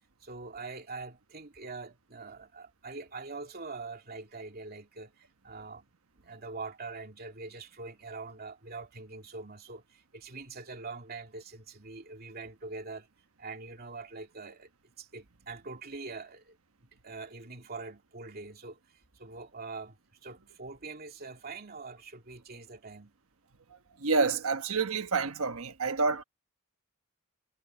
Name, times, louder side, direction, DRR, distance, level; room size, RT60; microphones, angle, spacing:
voice 1, 0.2-5.9 6.2-13.1 13.4-14.7 15.0-16.6 17.0-20.0 20.2-23.1, right 3 dB, 45° right, 2.6 m, -44 dB
voice 2, 24.0-26.2, right 4 dB, 70° right, 1.3 m, -28 dB
head